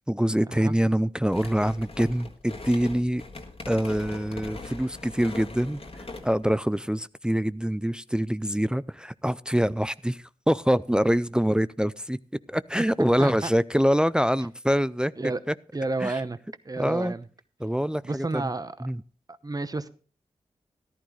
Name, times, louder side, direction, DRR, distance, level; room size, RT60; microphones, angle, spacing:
voice 1, 0.1-3.2 3.7-5.8 6.2-12.2 12.5-15.1 15.5-15.6 16.0-16.1 16.8-17.1 17.6-18.5 18.8-19.0, equal, 5° right, 0.4 m, -25 dB
sound 1, 1.3-6.5, left 2 dB, 45° left, 1.8 m, -41 dB
voice 2, 13.2-13.5 15.2-15.4 15.7-16.4 16.6-17.2 18.0-18.9 19.3-19.9, right 3 dB, 25° right, 0.9 m, -31 dB
14.0 x 11.0 x 3.2 m
cardioid pair, 40°, 14 cm